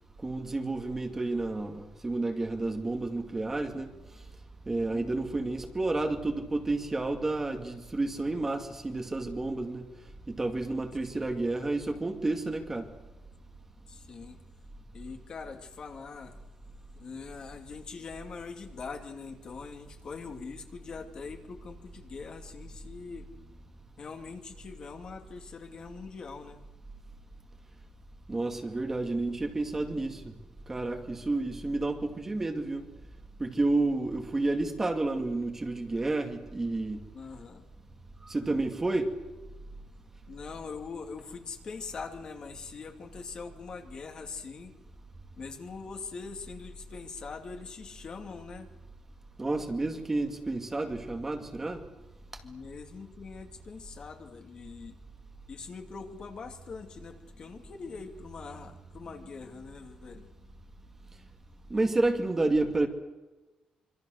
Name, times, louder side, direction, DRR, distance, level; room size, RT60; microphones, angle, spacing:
voice 1, 0.2-3.9 4.7-9.9 10.3-12.9 28.3-30.2 30.7-32.8 33.4-37.0 38.3-39.1 49.4-51.8 61.7-62.9, right 2 dB, 15° right, 2.2 m, -30 dB
voice 2, 4.9-5.3 11.1-11.3 13.9-14.4 14.9-16.3 17.0-23.3 24.0-26.6 37.1-37.6 40.3-44.7 45.4-48.7 52.4-55.0 55.5-60.3, left 5 dB, 35° left, 2.6 m, -43 dB
26.0 x 26.0 x 6.6 m
cardioid pair, 175°, 2 cm